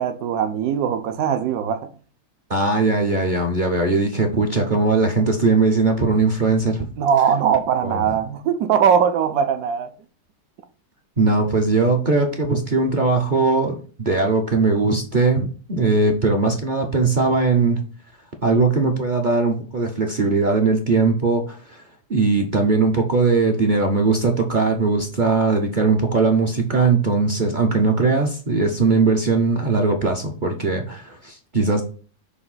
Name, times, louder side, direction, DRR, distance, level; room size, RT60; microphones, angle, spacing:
voice 1, 0.0-1.9 7.0-9.9, right 8 dB, 70° right, 1.2 m, -20 dB
voice 2, 2.5-6.9 7.8-8.0 11.2-17.8 18.4-21.8 22.1-31.8, right 3 dB, 45° right, 0.6 m, -19 dB
6.6 x 2.6 x 5.5 m
omnidirectional pair, 1.8 m